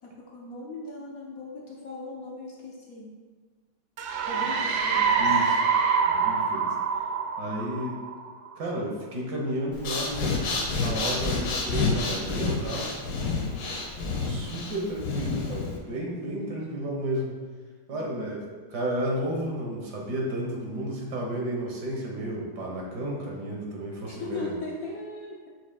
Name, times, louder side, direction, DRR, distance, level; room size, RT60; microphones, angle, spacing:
voice 1, 0.0-3.1 4.3-5.5 6.5-6.8 13.2-13.7 17.9-18.3 24.1-25.5, left 2 dB, 60° left, -2 dB, 1.0 m, -39 dB
sound 1, 4.0-8.5, right 6 dB, 85° right, 0.8 m, -25 dB
voice 2, 5.2-5.6 6.0-6.7 7.4-8.0 8.6-10.4 10.7-12.9 14.2-17.3 17.9-24.5, right 1 dB, 60° right, -1 dB, 1.6 m, -32 dB
Breathing, 9.7-15.8, left 3 dB, 75° left, 1.7 m, -29 dB
8.0 x 6.1 x 2.3 m, 1.4 s
omnidirectional pair, 2.3 m